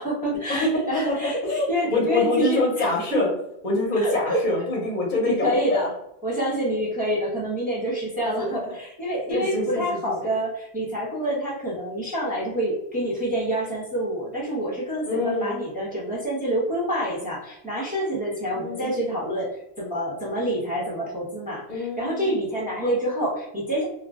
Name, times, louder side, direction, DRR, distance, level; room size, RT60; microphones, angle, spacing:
voice 1, 0.0-2.8 3.1-3.2 4.0-4.4 5.2-5.9 6.2-23.9, right 1 dB, 10° right, -4 dB, 0.7 m, -27 dB
voice 2, 1.4-3.3 3.6-5.9 8.2-8.7 9.3-9.8 15.0-15.6 18.5-18.9 21.7-22.4, left 2 dB, 45° left, -3 dB, 0.8 m, -25 dB
2.3 x 2.1 x 3.6 m, 0.83 s
omnidirectional pair, 1.1 m